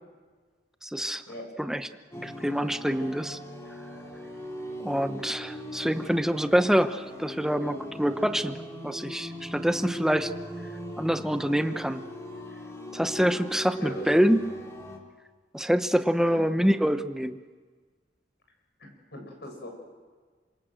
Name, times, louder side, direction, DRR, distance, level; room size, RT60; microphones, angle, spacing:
voice 1, 0.8-1.2 1.6-1.9 2.2-3.4 4.8-8.6 8.8-10.3 11.0-12.0 12.9-14.4 15.5-17.4, equal, 5° right, 9 dB, 1.0 m, -26 dB
sound 1, 2.1-15.0, equal, 15° left, 3.5 m, -39 dB
voice 2, 13.8-14.1 16.2-16.6 18.8-19.7, left 1 dB, 65° left, 3 dB, 7.4 m, -41 dB
27.0 x 25.0 x 7.8 m, 1.5 s
head